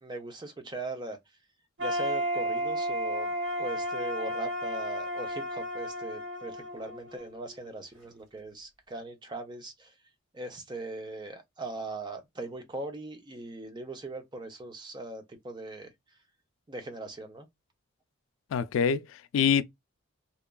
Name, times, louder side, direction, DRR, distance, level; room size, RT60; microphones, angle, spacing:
voice 1, 0.0-1.2 1.8-9.9 10.3-15.9 16.7-17.5, right 2 dB, 25° right, 0.5 m, -40 dB
sound 1, 1.8-7.7, equal, 70° right, 1.3 m, -33 dB
voice 2, 18.5-19.6, left 7 dB, 85° left, 0.3 m, -25 dB
2.9 x 2.3 x 2.2 m
head